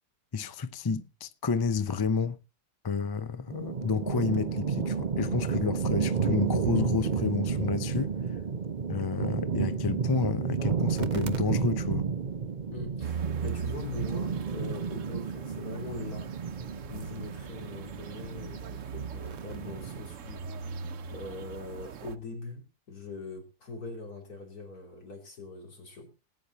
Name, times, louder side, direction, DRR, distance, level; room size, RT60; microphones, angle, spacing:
voice 1, 0.3-2.4 2.8-8.1 8.9-12.1, left 5 dB, 40° left, 0.3 m, -30 dB
sound 1, 3.5-20.0, right 6 dB, 40° right, 0.7 m, -31 dB
voice 2, 12.7-16.3 16.9-20.5 21.1-26.1, left 3 dB, 70° left, 3.7 m, -42 dB
sound 2, 13.0-22.2, right 6 dB, 55° right, 1.1 m, -40 dB
18.5 x 8.7 x 4.1 m
omnidirectional pair, 1.7 m